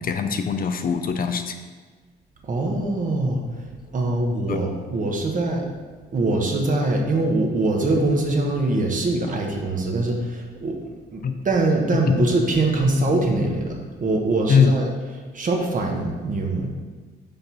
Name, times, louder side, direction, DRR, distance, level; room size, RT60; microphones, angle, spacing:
voice 1, 0.0-1.6 4.5-4.6 11.2-11.4 12.1-12.3 14.5-14.7, left 6 dB, 45° left, 7 dB, 0.5 m, -21 dB
voice 2, 2.4-3.4 3.9-5.7 6.1-10.8 11.1-14.9 15.3-16.7, right 2 dB, 40° right, 1 dB, 1.2 m, -23 dB
5.3 x 4.5 x 5.5 m, 1.4 s
cardioid pair, 90°, 20 cm